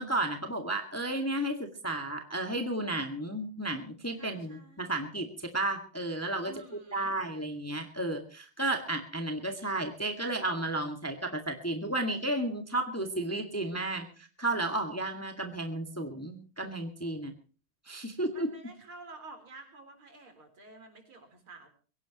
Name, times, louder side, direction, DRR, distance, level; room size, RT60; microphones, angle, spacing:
voice 1, 0.0-6.5 6.9-17.3 17.9-18.5, right 2 dB, 5° left, 5 dB, 1.7 m, -33 dB
voice 2, 4.2-5.0 6.4-7.2 18.3-21.7, right 3 dB, 80° right, 5 dB, 4.7 m, -50 dB
23.0 x 17.0 x 3.0 m, 0.38 s
omnidirectional pair, 2.3 m